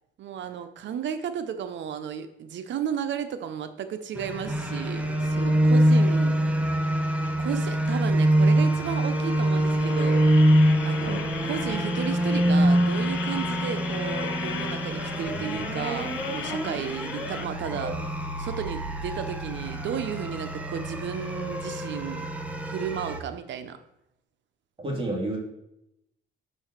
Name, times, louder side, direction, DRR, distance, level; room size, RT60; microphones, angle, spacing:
voice 1, 0.2-6.3 7.4-10.3 10.8-17.9 18.4-22.3 22.6-23.8, right 8 dB, 70° right, 9 dB, 0.8 m, -33 dB
sound 1, 4.2-23.2, right 1 dB, 5° right, 1.1 m, -25 dB
sound 2, 9.5-17.4, left 10 dB, 80° left, 0.7 m, -37 dB
voice 2, 24.8-25.4, right 1 dB, 25° right, -1 dB, 2.7 m, -32 dB
5.5 x 5.5 x 6.4 m, 0.84 s
cardioid pair, 90°, 20 cm